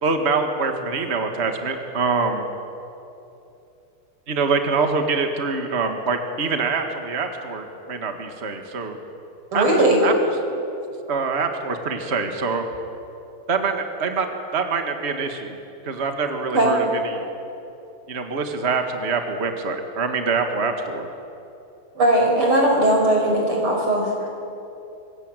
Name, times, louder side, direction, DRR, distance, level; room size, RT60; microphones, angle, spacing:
voice 1, 0.0-2.5 4.3-9.0 9.5-10.1 11.1-12.6 13.5-15.6 15.8-17.2 18.1-21.1, right 4 dB, 30° right, 5 dB, 1.9 m, -25 dB
voice 2, 9.5-10.0 16.5-16.8 22.0-24.3, right 1 dB, 85° right, 1 dB, 6.2 m, -19 dB
25.0 x 21.5 x 9.1 m, 2.9 s
omnidirectional pair, 2.3 m